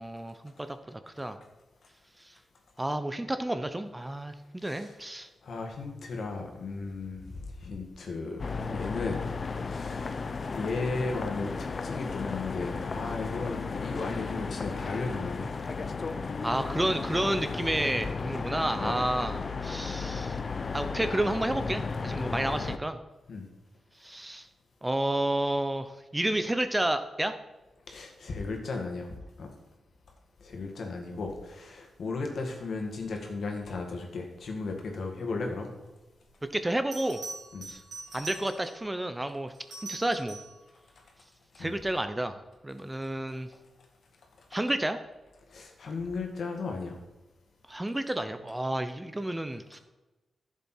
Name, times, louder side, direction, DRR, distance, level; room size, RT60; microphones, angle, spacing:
voice 1, 0.0-1.4 2.2-2.3 2.8-5.3 16.4-20.4 20.7-23.0 24.0-24.5 24.8-27.3 36.5-37.2 37.7-37.8 38.1-39.5 39.8-40.4 41.6-43.5 44.5-45.0 47.7-49.8, right 1 dB, 15° right, 9 dB, 0.8 m, -31 dB
voice 2, 4.6-5.0 5.4-9.2 9.7-10.3 10.5-15.5 18.8-19.0 23.3-23.5 27.9-29.1 29.4-29.5 30.4-35.7 37.5-37.7 41.5-41.8 45.5-47.0, left 3 dB, 70° left, 2 dB, 2.2 m, -35 dB
sound 1, 8.4-22.8, left 4 dB, 50° left, 0.6 m, -34 dB
Bell, 36.3-36.4 36.9-38.8 39.5-40.6 43.3-43.5, right 3 dB, 70° right, 3.8 m, -43 dB
11.5 x 7.3 x 4.5 m, 1.1 s
cardioid pair, 65°, 0 cm